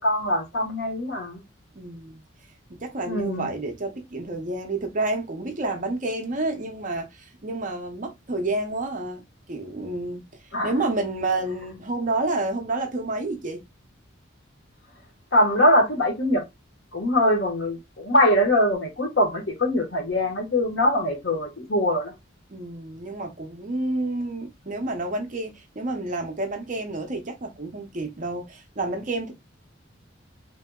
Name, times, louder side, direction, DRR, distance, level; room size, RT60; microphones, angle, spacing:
voice 1, 0.0-1.4 3.1-3.5 10.5-10.7 15.3-16.4 16.9-22.1, left 1 dB, 65° left, 1.2 m, -22 dB
voice 2, 1.7-2.2 2.7-9.2 9.5-10.2 10.6-13.6 22.5-29.3, right 2 dB, 40° right, 0.6 m, -29 dB
3.5 x 2.7 x 2.3 m
head